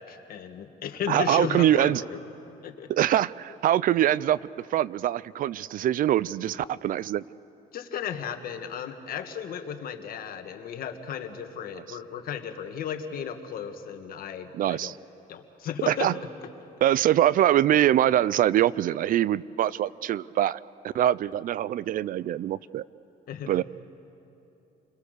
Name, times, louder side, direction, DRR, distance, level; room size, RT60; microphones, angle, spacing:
voice 1, 0.0-2.2 2.6-2.9 7.7-14.9 15.3-16.1 23.3-23.6, left 8 dB, 60° left, 6 dB, 1.8 m, -35 dB
voice 2, 1.1-2.0 2.9-4.4 4.7-7.2 14.6-14.9 15.9-16.1 16.8-20.6 20.9-22.8 23.5-23.6, right 12 dB, 55° right, 20 dB, 0.5 m, -23 dB
29.0 x 22.0 x 6.7 m, 2.8 s
cardioid pair, 110°, 17 cm